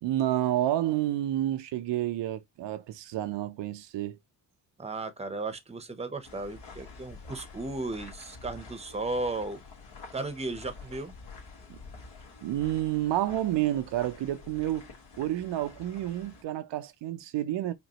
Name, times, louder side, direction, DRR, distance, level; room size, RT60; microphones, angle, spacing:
voice 1, 0.0-4.2 11.7-11.8 12.4-14.9 15.2-17.7, right 13 dB, 80° right, 0.7 m, -29 dB
voice 2, 4.8-9.6 10.1-11.1, right 2 dB, 15° right, 0.8 m, -35 dB
sound 1, 6.2-16.4, left 4 dB, 70° left, 2.0 m, -48 dB
5.1 x 2.6 x 3.0 m
cardioid pair, 85°, 42 cm